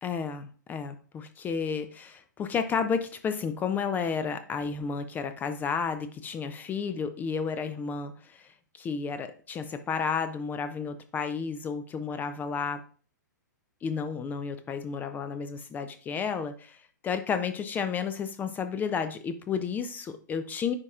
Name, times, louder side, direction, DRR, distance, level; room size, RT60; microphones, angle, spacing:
voice 1, 0.0-12.8 13.8-20.7, left 6 dB, 15° left, 10 dB, 0.4 m, -32 dB
9.6 x 4.1 x 2.4 m, 0.41 s
figure-of-eight pair, 115°, 10 cm